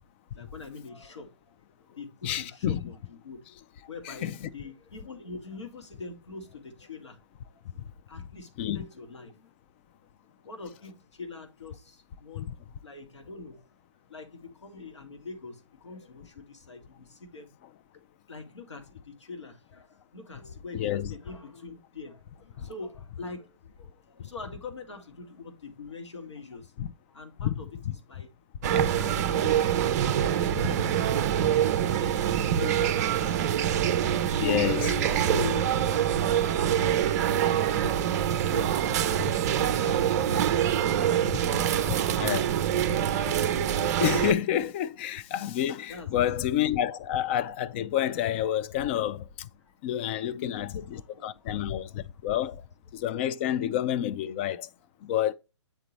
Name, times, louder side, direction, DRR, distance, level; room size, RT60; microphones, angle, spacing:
voice 1, 0.3-1.5 1.8-3.4 3.9-7.6 8.1-9.5 10.3-12.5 12.8-13.7 14.1-17.5 18.3-26.7 27.1-28.3 28.7-31.3 32.6-33.2 35.2-37.6 38.1-41.1 41.5-42.4 45.9-46.2 49.6-49.7 50.2-51.5 51.9-52.0, left 3 dB, 70° left, 1.8 m, -44 dB
voice 2, 2.2-2.8 4.1-4.3 8.6-8.8 12.4-12.5 20.7-21.1 22.6-22.7 26.8-26.9 27.4-27.5 27.9-28.0 30.6-30.7 34.3-35.3 41.3-41.4 42.2-42.6 44.0-49.5 49.8-52.6 52.9-54.7 55.0-55.3, left 11 dB, 25° left, 0.3 m, -29 dB
sound 1, 28.6-44.3, right 10 dB, 35° right, 0.5 m, -25 dB
8.9 x 3.9 x 3.0 m
figure-of-eight pair, 125°, 16 cm